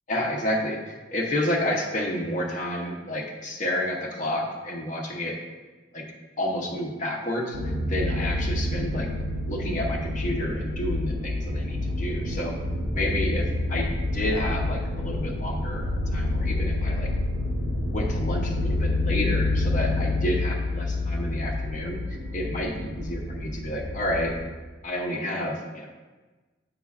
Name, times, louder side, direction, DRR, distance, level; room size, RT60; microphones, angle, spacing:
voice 1, 0.1-5.4 5.9-6.0 6.4-7.6 7.9-9.1 9.4-12.5 12.9-17.1 17.8-22.0 22.3-24.3 24.8-25.9, left 1 dB, 45° left, -1 dB, 0.8 m, -30 dB
sound 1, 7.5-24.5, left 2 dB, 75° right, 0.8 m, -28 dB
8.2 x 5.6 x 2.4 m, 1.3 s
head